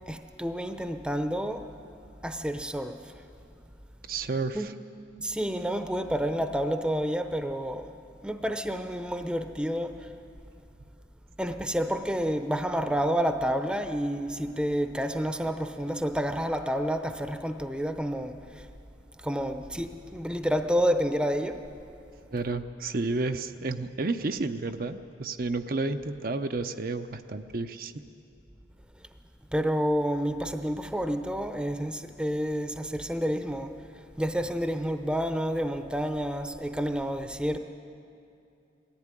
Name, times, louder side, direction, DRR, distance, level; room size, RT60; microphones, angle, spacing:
voice 1, 0.1-1.7 2.2-3.1 4.5-4.7 5.2-7.9 8.2-10.1 11.4-18.7 19.2-21.6 29.5-37.6, equal, 5° right, 7 dB, 0.7 m, -29 dB
voice 2, 4.1-4.7 22.3-27.9, right 3 dB, 50° right, 7 dB, 0.6 m, -31 dB
20.0 x 14.5 x 9.8 m, 2.6 s
head